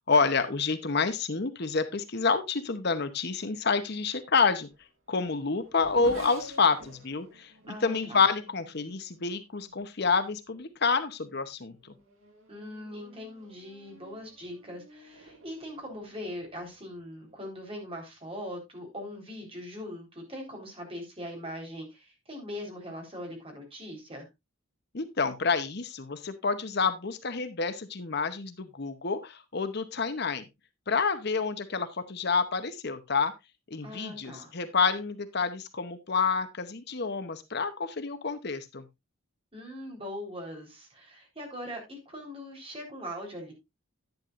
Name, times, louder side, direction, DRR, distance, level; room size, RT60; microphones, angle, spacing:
voice 1, 0.1-4.7 5.1-11.9 24.9-30.5 30.9-33.3 33.7-38.8, left 4 dB, 50° left, 11 dB, 0.9 m, -28 dB
Race car auto racing / Accelerating revving vroom, 4.2-10.0 10.8-11.2 11.6-17.6, right 1 dB, 80° right, 3.8 m, -52 dB
voice 2, 7.7-8.2 12.5-24.3 33.8-34.5 39.5-43.5, equal, 25° right, 1 dB, 3.9 m, -41 dB
10.5 x 10.5 x 2.5 m, 0.21 s
head